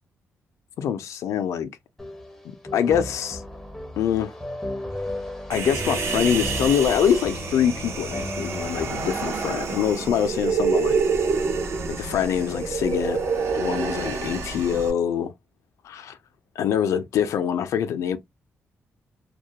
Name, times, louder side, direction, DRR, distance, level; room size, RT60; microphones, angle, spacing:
voice 1, 0.8-1.7 2.7-3.4 4.0-4.3 5.5-11.0 11.9-13.2 13.5-15.3 15.8-16.2 16.6-18.2, left 8 dB, 80° left, 0.4 m, -24 dB
sound 1, 2.0-9.0, left 1 dB, 5° left, 0.4 m, -34 dB
Human voice, 5.5-14.9, right 5 dB, 60° right, 0.5 m, -27 dB
2.3 x 2.1 x 2.7 m
wide cardioid pair, 175°, 5 cm